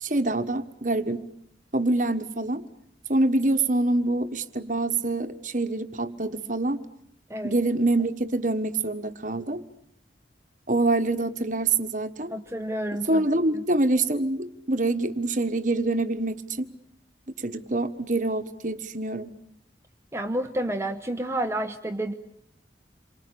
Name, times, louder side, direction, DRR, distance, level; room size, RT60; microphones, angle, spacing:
voice 1, 0.0-1.2 1.7-2.6 3.1-6.8 7.4-9.6 10.7-12.3 13.1-16.7 17.4-19.3, right 2 dB, 45° right, 8 dB, 1.4 m, -25 dB
voice 2, 12.3-13.2 13.5-13.6 20.1-22.1, right 1 dB, 15° right, 7 dB, 1.1 m, -30 dB
28.0 x 24.0 x 8.6 m, 0.70 s
head